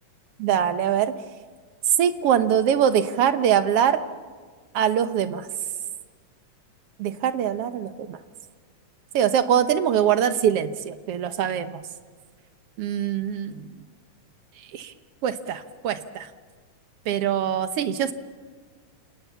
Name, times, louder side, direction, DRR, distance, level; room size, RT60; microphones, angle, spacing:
voice 1, 0.4-1.1 2.0-4.0 4.7-5.5 7.0-8.2 9.1-11.8 12.8-13.7 14.7-14.9 15.2-16.3 17.1-18.1, right 9 dB, 60° right, 10 dB, 1.8 m, -23 dB
28.0 x 19.5 x 7.1 m, 1.5 s
omnidirectional pair, 3.4 m